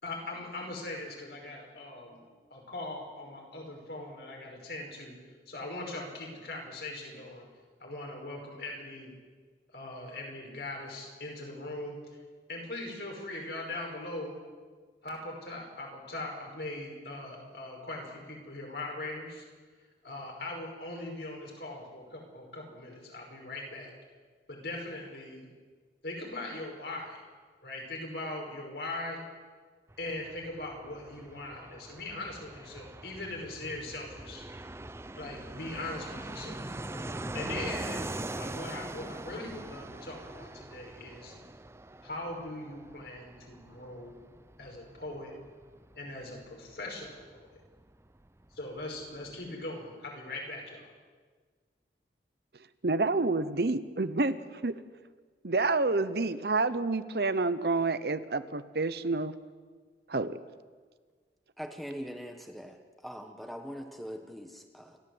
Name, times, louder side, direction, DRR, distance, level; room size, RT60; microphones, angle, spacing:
voice 1, 0.0-2.2 2.5-5.2 5.5-7.5 7.8-9.1 9.7-12.2 12.5-14.3 15.0-19.4 20.0-23.9 24.5-25.5 26.0-27.2 27.6-29.2 30.0-34.4 35.2-36.7 37.3-38.0 38.4-41.3 42.0-44.1 44.6-45.3 46.0-47.5 48.5-50.9, left 2 dB, 65° left, 0 dB, 5.6 m, -40 dB
Fixed-wing aircraft airplane, 29.9-48.3 48.5-48.6 48.8-49.5, right 2 dB, 15° right, 0.5 m, -42 dB
voice 2, 52.8-54.4 54.6-54.8 55.4-59.3 60.1-60.4, right 3 dB, 65° right, 13 dB, 0.9 m, -28 dB
voice 3, 61.6-65.0, equal, ahead, 4 dB, 1.3 m, -42 dB
29.0 x 13.0 x 8.0 m, 1.5 s
head